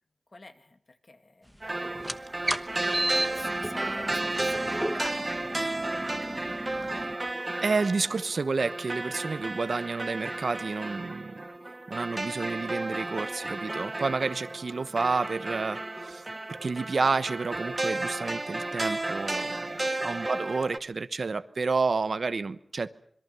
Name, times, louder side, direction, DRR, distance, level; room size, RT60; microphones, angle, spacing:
voice 1, 0.3-1.6 2.8-6.4 6.7-7.0 20.3-20.5, left 2 dB, 50° left, 8 dB, 2.3 m, -47 dB
sound 1, 1.6-20.8, right 2 dB, 30° right, 0.9 m, -33 dB
sound 2, 1.9-7.2, equal, 10° right, 1.1 m, -34 dB
voice 2, 7.6-11.4 11.9-16.2 16.6-22.9, right 4 dB, 70° right, 14 dB, 1.0 m, -30 dB
26.0 x 22.0 x 6.9 m, 0.65 s
wide cardioid pair, 80°, 0 cm